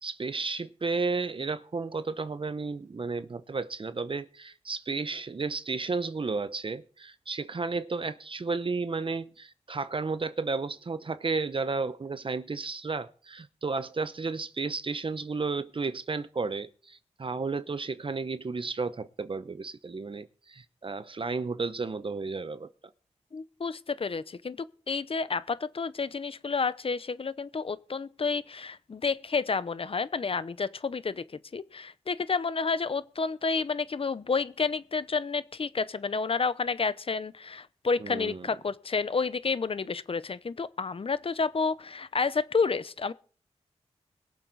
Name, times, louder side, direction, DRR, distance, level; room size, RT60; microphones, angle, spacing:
voice 1, 0.0-22.7 38.0-38.5, right 4 dB, 45° right, 0.8 m, -33 dB
voice 2, 23.3-24.6 24.9-31.2 31.5-43.1, left 4 dB, 50° left, 0.8 m, -30 dB
22.0 x 7.5 x 4.0 m
cardioid pair, 50°, 12 cm